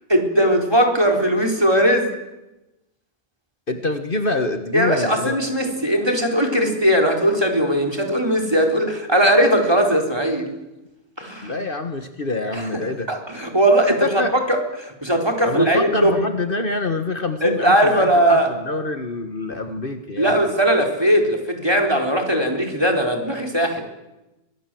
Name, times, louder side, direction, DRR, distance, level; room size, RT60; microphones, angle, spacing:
voice 1, 0.1-2.1 4.7-10.5 11.2-11.6 12.5-12.7 13.1-14.2 14.5-16.2 17.4-18.5 20.2-23.8, right 1 dB, 20° right, 2 dB, 4.4 m, -19 dB
voice 2, 3.7-5.4 11.4-13.1 14.0-14.3 15.4-20.4, left 3 dB, 50° left, 7 dB, 1.7 m, -26 dB
28.5 x 24.0 x 7.8 m, 1.0 s
omnidirectional pair, 1.2 m